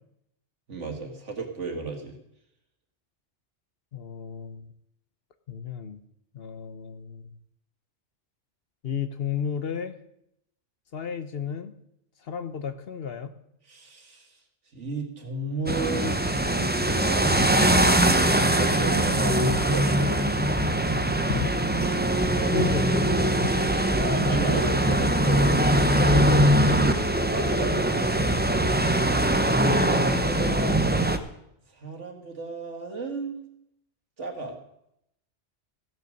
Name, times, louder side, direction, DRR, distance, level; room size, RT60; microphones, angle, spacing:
voice 1, 0.7-2.2 13.7-14.4 14.7-18.0 18.4-20.3 23.9-28.4 29.6-30.8 31.7-33.4 34.2-34.6, right 3 dB, 75° right, 3 dB, 2.2 m, -34 dB
voice 2, 3.9-4.7 5.5-6.0 6.3-7.2 8.8-10.0 10.9-11.7 12.2-13.3 18.4-18.6 21.3-21.5 22.4-23.6, left 7 dB, 60° left, 11 dB, 1.0 m, -33 dB
sound 1, 15.7-31.2, right 1 dB, 10° right, 0.6 m, -22 dB
15.5 x 6.8 x 6.5 m, 0.78 s
omnidirectional pair, 1.2 m